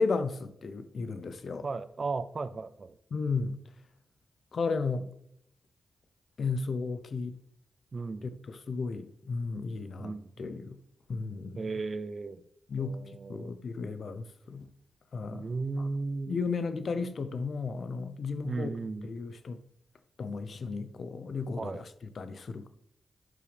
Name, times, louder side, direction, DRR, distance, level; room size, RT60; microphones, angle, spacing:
voice 1, 0.0-1.6 3.1-3.6 4.5-5.1 6.4-7.3 8.5-10.1 10.4-10.8 11.1-11.7 12.7-13.0 13.3-14.7 15.1-15.5 15.8-15.9 16.3-18.7 19.0-19.6 20.2-21.8 22.2-22.7, left 4 dB, 70° left, 0.7 m, -34 dB
voice 2, 1.6-3.0 7.9-8.3 10.0-10.3 11.5-12.4 12.8-13.5 15.3-16.4 18.4-19.1 21.6-21.8, right 3 dB, 55° right, 0.6 m, -35 dB
11.0 x 6.9 x 3.4 m
cardioid pair, 45°, 0 cm